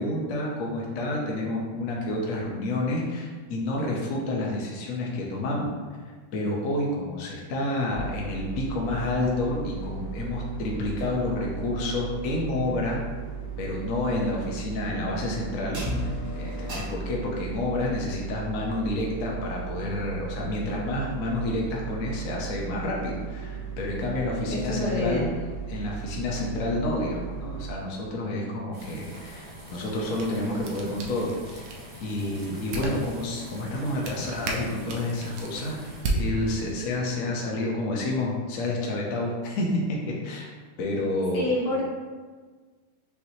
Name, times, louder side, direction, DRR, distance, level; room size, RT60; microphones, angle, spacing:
voice 1, 0.0-5.7 6.3-13.0 13.6-15.8 16.4-25.2 25.7-31.6 32.0-35.8 36.1-40.5 40.8-41.6, left 2 dB, 75° left, -2 dB, 0.7 m, -29 dB
sound 1, 7.9-27.7, right 5 dB, 65° right, 2.2 m, -36 dB
voice 2, 24.5-25.3 41.3-41.8, left 2 dB, 55° left, -6 dB, 1.6 m, -27 dB
sound 2, 28.7-36.0, equal, 45° right, 0.6 m, -44 dB
sound 3, 29.9-37.0, right 2 dB, 80° right, 1.5 m, -35 dB
5.9 x 2.8 x 2.7 m, 1.4 s
omnidirectional pair, 2.2 m